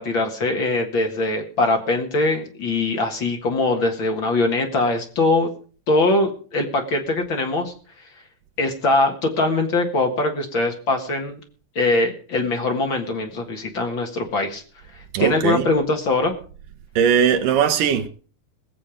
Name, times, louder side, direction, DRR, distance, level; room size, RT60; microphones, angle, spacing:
voice 1, 0.0-5.5 5.9-7.7 8.6-11.4 11.7-14.6 14.9-16.3, left 2 dB, 55° left, 1.3 m, -22 dB
voice 2, 15.1-15.7 17.0-18.1, right 8 dB, 70° right, 2.1 m, -19 dB
21.5 x 7.5 x 5.0 m
omnidirectional pair, 4.7 m